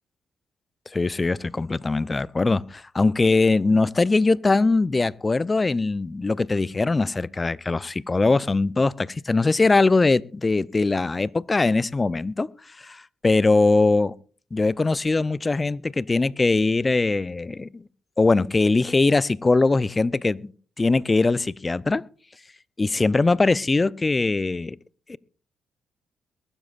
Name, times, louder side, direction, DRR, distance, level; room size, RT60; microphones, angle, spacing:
voice 1, 0.9-12.5 12.8-14.1 14.5-17.8 18.2-20.5 20.8-22.0 22.8-24.8 25.1-25.2, left 3 dB, 30° left, 0.6 m, -21 dB
22.5 x 12.5 x 2.5 m
hypercardioid pair, 50°, 0 cm